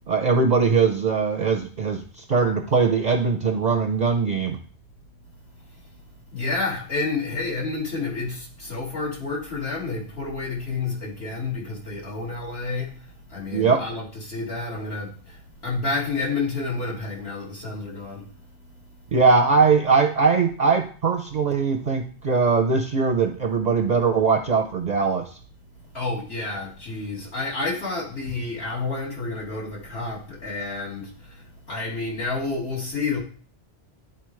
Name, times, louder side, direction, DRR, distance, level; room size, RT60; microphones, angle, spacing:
voice 1, 0.1-4.6 13.5-13.8 19.1-25.4, right 5 dB, 50° right, 0.7 m, -21 dB
voice 2, 6.3-19.1 25.9-33.2, left 3 dB, 70° left, 2.4 m, -30 dB
11.0 x 4.1 x 3.1 m
omnidirectional pair, 1.1 m